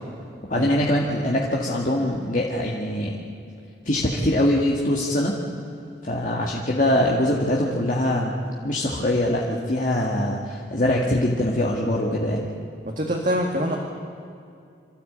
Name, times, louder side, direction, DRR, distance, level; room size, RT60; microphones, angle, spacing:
voice 1, 0.5-3.2 3.9-5.4 6.0-8.3 8.6-12.5, left 1 dB, 45° left, -2 dB, 1.9 m, -23 dB
voice 2, 12.9-13.8, equal, 45° right, -1 dB, 2.0 m, -24 dB
26.5 x 13.5 x 8.7 m, 2.5 s
head